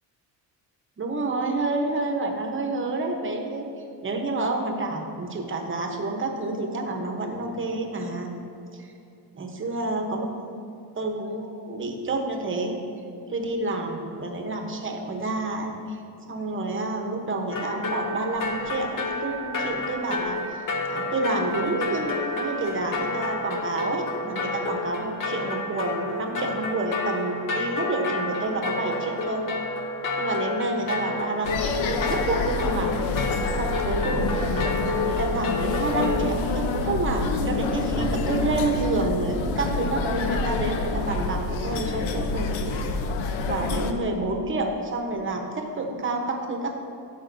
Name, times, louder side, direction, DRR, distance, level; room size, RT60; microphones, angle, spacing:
voice 1, 1.0-3.7 4.0-8.3 8.7-8.9 9.3-10.3 11.0-12.8 13.3-16.0 16.3-20.4 20.9-29.5 30.2-33.0 33.5-34.4 35.0-42.5 43.4-46.8, right 2 dB, 25° right, 3 dB, 0.9 m, -29 dB
sound 1, 17.5-36.2, left 2 dB, 40° left, 0.8 m, -30 dB
sound 2, 31.4-43.9, left 3 dB, 80° left, 0.7 m, -27 dB
13.0 x 5.2 x 2.6 m, 2.6 s
cardioid pair, 110°, 47 cm